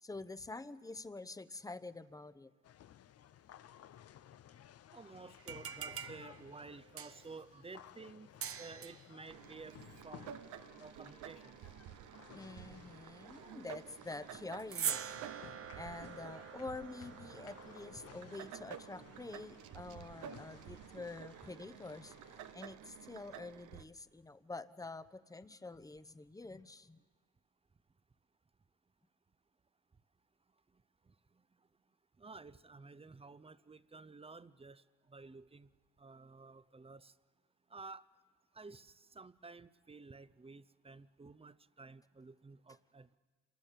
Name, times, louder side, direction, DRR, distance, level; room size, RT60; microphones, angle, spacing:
voice 1, 0.0-2.5 12.3-15.0 15.7-22.1 22.5-27.0, left 3 dB, 10° left, 14 dB, 0.8 m, -47 dB
sound 1, 2.6-22.5, left 10 dB, 55° left, 0.6 m, -58 dB
voice 2, 4.9-8.3 8.6-9.8 10.0-10.3 10.8-11.6 13.3-13.5 32.2-34.8 35.1-35.7 36.0-37.1 37.7-38.0 38.6-43.2, right 4 dB, 20° right, 16 dB, 0.7 m, -52 dB
sound 2, 5.4-7.4 8.4-9.1 14.6-18.2, right 8 dB, 50° right, 0.9 m, -44 dB
sound 3, 9.3-23.8, right 10 dB, 85° right, 0.9 m, -52 dB
26.5 x 20.5 x 7.5 m, 1.5 s
cardioid pair, 90°, 30 cm